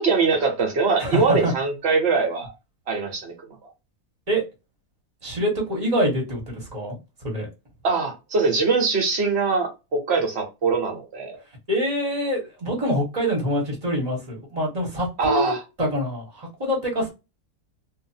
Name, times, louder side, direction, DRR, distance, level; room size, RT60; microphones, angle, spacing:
voice 1, 0.0-2.5 2.9-3.3 7.8-11.4 15.2-15.6, right 4 dB, 45° right, 1.1 m, -22 dB
voice 2, 1.0-1.5 4.3-4.4 5.2-7.0 7.2-7.5 11.7-15.5 15.8-17.1, equal, 25° right, 1.2 m, -25 dB
2.6 x 2.6 x 2.7 m
omnidirectional pair, 1.8 m